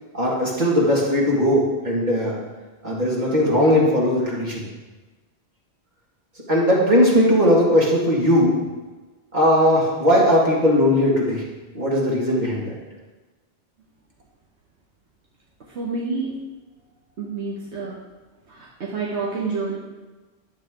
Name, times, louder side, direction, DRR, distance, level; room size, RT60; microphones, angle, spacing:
voice 1, 0.1-2.4 2.8-4.7 6.5-8.6 9.3-11.5 11.7-12.7, equal, 45° right, -5 dB, 2.2 m, -18 dB
voice 2, 15.7-16.3 17.2-18.0 18.5-19.8, right 4 dB, 85° right, -4 dB, 1.5 m, -28 dB
11.5 x 7.1 x 3.8 m, 1.2 s
omnidirectional pair, 1.1 m